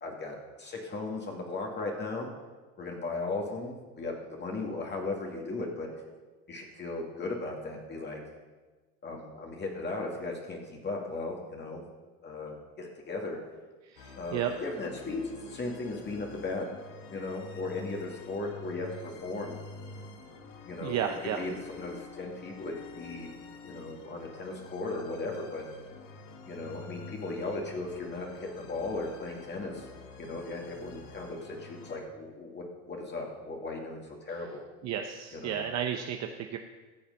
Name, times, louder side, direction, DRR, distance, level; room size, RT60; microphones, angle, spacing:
voice 1, 0.0-2.3 2.8-5.9 6.5-8.2 9.0-11.8 12.2-13.4 14.2-16.7 17.1-19.6 20.7-23.3 23.6-25.6 26.5-29.9 30.2-34.6 35.3-35.6, left 3 dB, 30° left, 0 dB, 2.1 m, -37 dB
voice 2, 13.9-14.5 20.8-21.4 34.8-36.6, right 9 dB, 45° right, 5 dB, 0.8 m, -32 dB
sound 1, 14.0-32.0, left 3 dB, 70° left, 1.9 m, -48 dB
13.5 x 7.1 x 5.5 m, 1.3 s
supercardioid pair, 95°, 38 cm